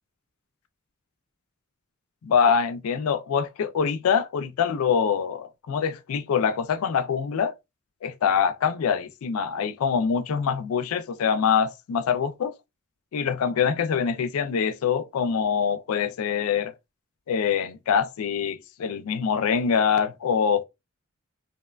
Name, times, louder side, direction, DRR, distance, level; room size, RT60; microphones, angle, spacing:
voice 1, 2.2-7.5 8.0-12.5 13.1-16.7 17.3-20.6, left 7 dB, 80° left, 0.4 m, -24 dB
2.8 x 2.1 x 2.3 m
head